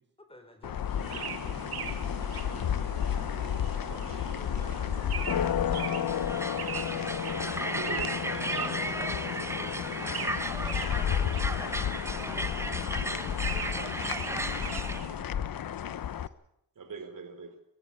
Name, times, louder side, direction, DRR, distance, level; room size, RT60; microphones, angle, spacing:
voice 1, 0.2-1.7 3.9-5.4, left 1 dB, 15° left, 7 dB, 4.6 m, -53 dB
sound 1, 0.6-16.3, left 9 dB, 65° left, 0.9 m, -32 dB
sound 2, 0.8-15.2, right 8 dB, 80° right, 1.7 m, -42 dB
voice 2, 2.5-4.5 7.6-10.1 16.8-17.5, right 4 dB, 60° right, 8 dB, 3.9 m, -45 dB
sound 3, 6.1-15.0, right 1 dB, 5° right, 1.2 m, -35 dB
voice 3, 13.5-15.5 16.2-16.3, right 3 dB, 30° right, 4 dB, 2.4 m, -51 dB
23.5 x 15.5 x 8.8 m, 0.81 s
wide cardioid pair, 115°, 37 cm